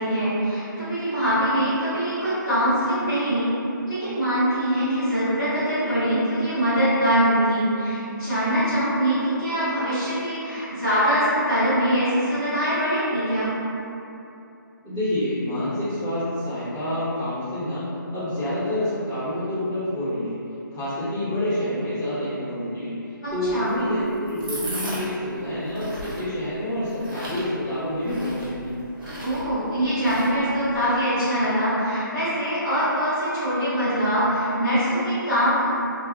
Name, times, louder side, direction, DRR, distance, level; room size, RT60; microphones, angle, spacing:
voice 1, 0.0-3.5 3.9-13.5 23.2-23.7 29.2-35.7, equal, 10° left, -19 dB, 0.9 m, -23 dB
voice 2, 14.8-20.4 20.7-28.7, left 1 dB, 15° right, -19 dB, 0.5 m, -28 dB
sound 1, 23.3-30.8, right 1 dB, 75° right, 1.0 m, -37 dB
2.3 x 2.1 x 2.9 m, 2.8 s
hypercardioid pair, 180°, 11 cm